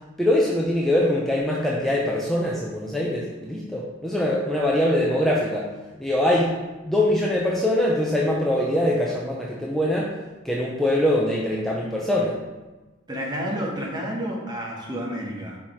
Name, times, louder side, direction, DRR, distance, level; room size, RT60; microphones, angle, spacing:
voice 1, 0.2-5.7 6.0-6.6 6.8-10.2 10.4-12.4, left 1 dB, ahead, -4 dB, 0.6 m, -23 dB
voice 2, 13.1-15.6, equal, 20° right, -2 dB, 1.1 m, -30 dB
5.6 x 4.7 x 4.4 m, 1.2 s
head